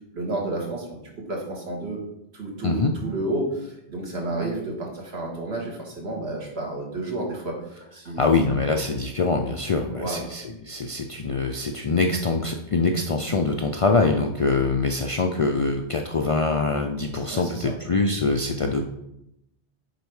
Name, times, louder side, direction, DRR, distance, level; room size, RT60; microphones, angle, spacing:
voice 1, 0.1-2.0 2.3-8.3 9.9-10.2 17.3-17.7, right 2 dB, 80° right, -1 dB, 1.7 m, -31 dB
voice 2, 2.6-2.9 8.2-18.8, left 3 dB, 55° left, 3 dB, 0.4 m, -24 dB
6.7 x 4.2 x 4.8 m, 0.84 s
omnidirectional pair, 1.1 m